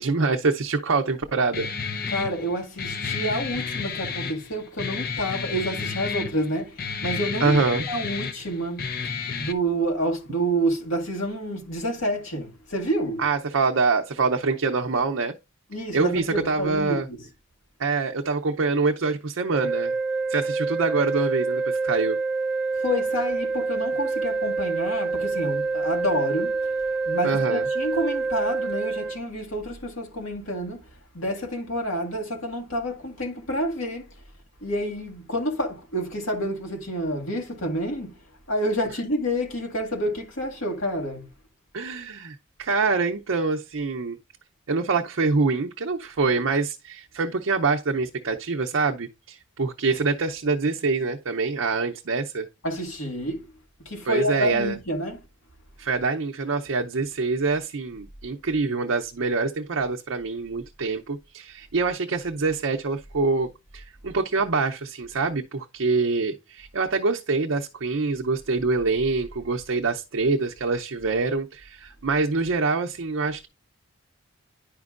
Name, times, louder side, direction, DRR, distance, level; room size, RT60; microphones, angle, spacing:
voice 1, 0.0-1.7 7.4-7.9 13.2-15.4 15.9-17.1 17.8-20.0 20.3-22.2 27.2-27.6 41.7-44.2 44.7-52.5 54.0-54.8 55.8-73.5, right 4 dB, 65° right, 0.6 m, -25 dB
Guitar, 1.5-9.5, left 5 dB, 45° left, 0.6 m, -31 dB
voice 2, 2.1-13.2 15.7-17.3 22.8-26.6 27.1-30.8 31.1-34.1 34.6-38.2 38.5-41.3 52.6-53.5 53.9-55.2, right 1 dB, 75° left, 1.9 m, -28 dB
sound 1, 19.5-29.2, right 3 dB, 5° right, 0.5 m, -26 dB
10.0 x 5.2 x 2.4 m
head